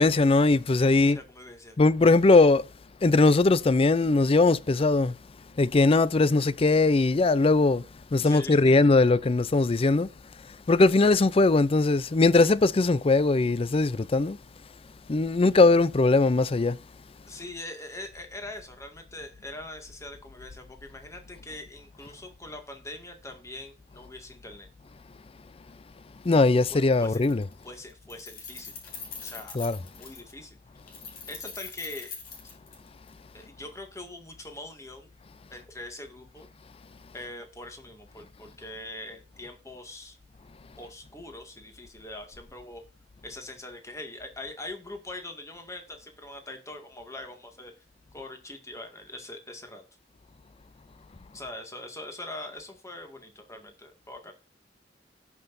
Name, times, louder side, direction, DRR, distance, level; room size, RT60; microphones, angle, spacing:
voice 1, 0.0-1.2 1.8-2.6 3.0-5.2 5.6-7.8 8.1-10.1 10.7-14.4 15.1-16.8 26.2-27.5 29.5-29.8, left 3 dB, 35° left, 0.5 m, -20 dB
voice 2, 1.0-1.8 8.2-8.7 17.3-24.7 26.7-27.2 27.6-28.7 29.2-29.6 30.0-30.6 31.2-32.1 33.3-35.1 35.5-36.5 37.1-40.2 40.8-42.8 43.2-47.7 48.1-49.8 51.3-54.3, left 2 dB, 15° left, 2.0 m, -42 dB
Keys jangling, 26.4-26.6 26.9-27.6 27.9-30.3 30.9-33.1, left 5 dB, 55° left, 3.1 m, -42 dB
17.0 x 6.0 x 2.6 m
head